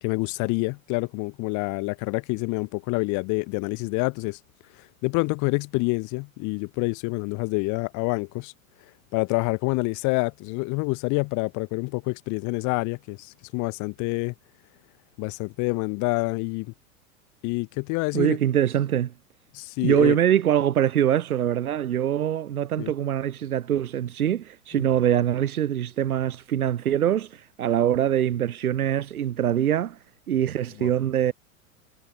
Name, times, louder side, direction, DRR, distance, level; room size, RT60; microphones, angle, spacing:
voice 1, 0.0-4.4 4.7-8.5 8.8-14.3 15.2-16.7 17.4-18.4 19.5-20.2 22.8-22.9 24.7-24.8 30.8-30.9, left 28 dB, 40° left, 1.5 m, -27 dB
voice 2, 18.1-19.1 19.8-30.0 30.3-31.3, right 10 dB, 90° right, 0.5 m, -23 dB
figure-of-eight pair, 90°, 43 cm